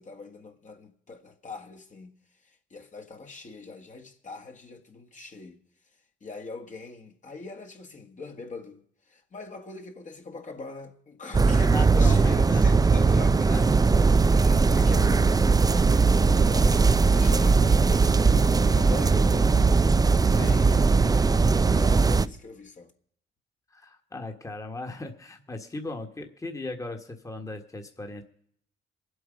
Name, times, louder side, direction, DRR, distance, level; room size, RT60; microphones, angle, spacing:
voice 1, 0.0-2.1 2.4-5.6 6.2-8.8 9.1-13.6 13.9-20.0 20.4-21.4 21.7-22.9, left 3 dB, 40° left, 1.7 m, -42 dB
sound 1, 11.3-22.3, right 4 dB, 20° right, 0.5 m, -20 dB
voice 2, 11.7-12.7 13.5-13.6 20.2-20.8 21.7-21.8 23.7-28.2, left 2 dB, 15° left, 1.6 m, -37 dB
23.5 x 8.1 x 5.2 m
cardioid pair, 90°, 20 cm